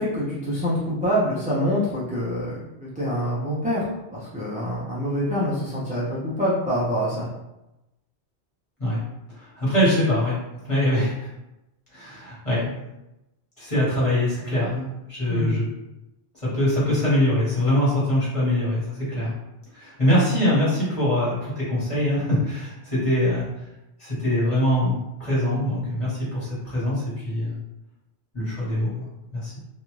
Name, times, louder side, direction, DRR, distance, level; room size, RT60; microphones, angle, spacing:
voice 1, 0.0-3.8 4.1-7.3 15.3-15.5, equal, 10° right, -9 dB, 0.4 m, -25 dB
voice 2, 9.3-10.4 10.6-11.3 11.9-12.7 13.6-15.7 16.4-19.3 19.7-23.5 24.0-27.6 28.3-29.1 29.3-29.5, left 1 dB, 30° left, -9 dB, 1.4 m, -23 dB
2.6 x 2.4 x 3.0 m, 0.94 s
omnidirectional pair, 1.2 m